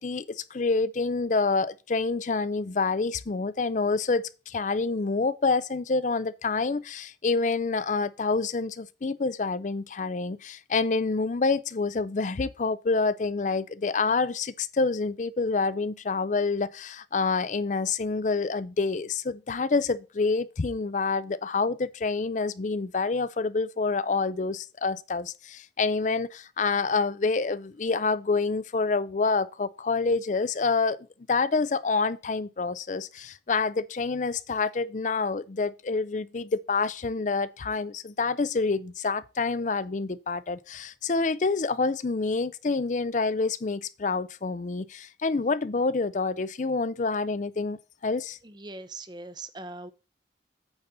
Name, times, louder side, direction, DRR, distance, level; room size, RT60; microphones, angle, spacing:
voice 1, 0.0-31.0 31.3-48.4, left 4 dB, 40° left, 0.5 m, -27 dB
voice 2, 48.4-49.9, right 2 dB, 25° right, 0.7 m, -41 dB
8.8 x 4.1 x 6.8 m
head